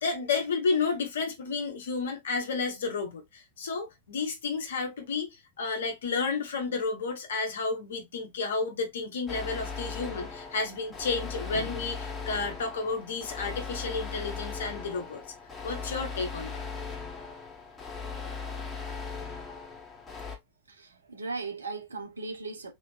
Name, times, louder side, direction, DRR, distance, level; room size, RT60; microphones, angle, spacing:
voice 1, 0.0-5.3 5.6-15.2 15.6-16.6, left 4 dB, 65° left, 1.3 m, -31 dB
sound 1, 9.3-20.4, left 5 dB, 15° left, 1.5 m, -38 dB
voice 2, 20.6-22.7, right 3 dB, 75° right, 1.1 m, -37 dB
3.8 x 3.1 x 3.3 m
figure-of-eight pair, 90°, 0 cm